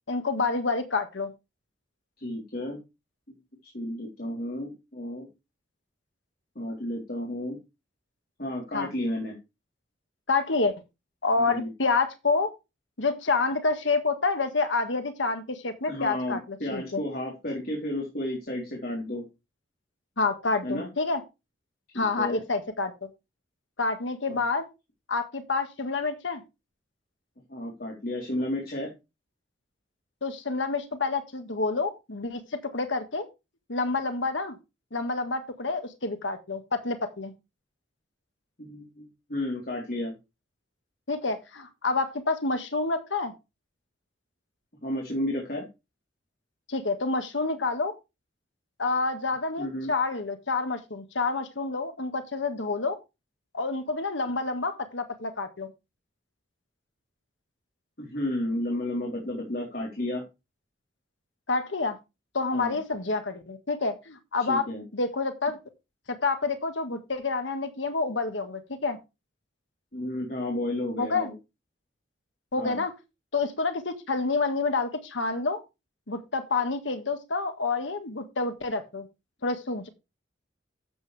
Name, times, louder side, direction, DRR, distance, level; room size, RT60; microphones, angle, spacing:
voice 1, 0.1-1.3 8.7-8.9 10.3-10.7 11.2-12.5 13.0-17.0 20.2-21.2 21.9-22.9 23.8-24.7 25.1-26.4 30.2-32.4 32.7-33.3 33.7-34.6 34.9-37.3 41.1-43.3 46.7-47.9 48.8-53.0 53.5-55.7 61.5-62.0 62.3-64.6 64.9-65.6 66.1-69.0 71.0-71.3 72.5-72.9 73.3-75.6 76.1-79.1 79.4-79.9, left 3 dB, 85° left, 8 dB, 1.5 m, -28 dB
voice 2, 2.2-2.8 3.3-3.4 3.6-5.3 6.6-7.6 8.4-9.3 11.4-11.7 15.9-19.3 20.6-20.9 21.9-22.4 24.2-24.4 27.5-28.9 38.6-40.1 44.8-45.7 49.6-49.9 58.0-60.2 62.5-62.8 64.5-64.8 69.9-71.3 72.6-72.8, left 1 dB, 50° left, -1 dB, 3.8 m, -32 dB
12.5 x 7.9 x 3.4 m, 0.25 s
head